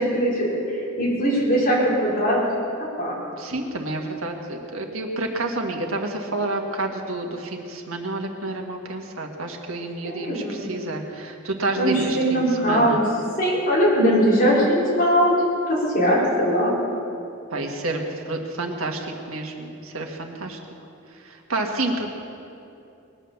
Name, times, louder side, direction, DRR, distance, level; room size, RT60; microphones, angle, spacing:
voice 1, 0.0-2.4 3.0-3.2 10.0-10.7 11.8-13.0 13.4-15.3 15.7-16.7, equal, 45° left, -6 dB, 4.8 m, -20 dB
voice 2, 3.4-13.0 17.5-20.6 21.2-22.1, right 2 dB, 80° right, 2 dB, 1.7 m, -29 dB
20.0 x 10.0 x 7.1 m, 2.8 s
head